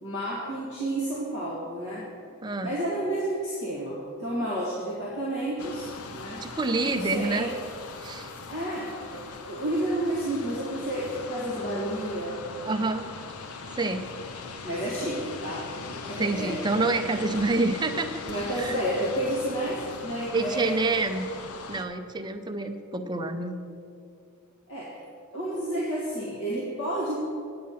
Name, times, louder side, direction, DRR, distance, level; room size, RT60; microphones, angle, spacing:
voice 1, 0.0-2.1 2.6-6.4 6.8-7.5 8.5-12.4 14.6-15.7 16.0-16.8 18.3-21.1 24.7-25.0 25.3-27.2, right 1 dB, 55° left, -6 dB, 1.6 m, -31 dB
voice 2, 2.4-2.7 6.4-7.5 8.0-8.3 12.6-13.1 13.7-14.1 16.2-18.8 20.3-21.3 21.7-23.6, right 3 dB, 20° right, 6 dB, 0.5 m, -27 dB
sound 1, 5.6-21.8, left 4 dB, 85° left, 0.7 m, -40 dB
8.6 x 8.6 x 5.6 m, 2.5 s
head